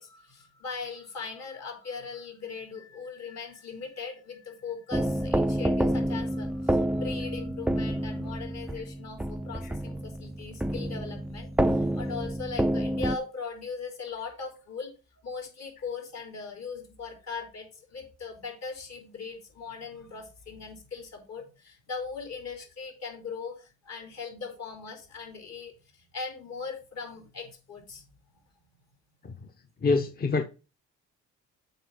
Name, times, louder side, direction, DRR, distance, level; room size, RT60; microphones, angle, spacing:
voice 1, 0.0-14.9 15.2-28.1, left 5 dB, 60° left, 3.7 m, -39 dB
sound 1, 4.9-13.2, right 1 dB, 5° right, 0.3 m, -28 dB
voice 2, 29.8-30.4, left 3 dB, 30° left, 0.7 m, -25 dB
8.0 x 4.7 x 5.2 m
cardioid pair, 90°, 30 cm